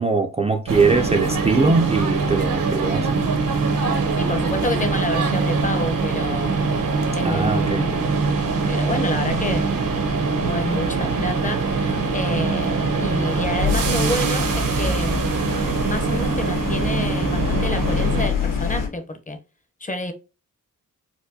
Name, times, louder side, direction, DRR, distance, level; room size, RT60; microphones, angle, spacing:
voice 1, 0.0-3.2 7.2-7.9, right 3 dB, 20° right, 0.4 m, -21 dB
sound 1, 0.7-18.3, right 4 dB, 70° right, 0.9 m, -23 dB
voice 2, 4.2-6.6 7.2-8.1 8.6-9.7 10.3-15.1 15.8-19.4 19.8-20.1, left 1 dB, 25° left, 0.7 m, -28 dB
sound 2, 9.3-18.9, left 4 dB, 70° left, 1.3 m, -28 dB
4.3 x 2.2 x 2.7 m
cardioid pair, 80°, 34 cm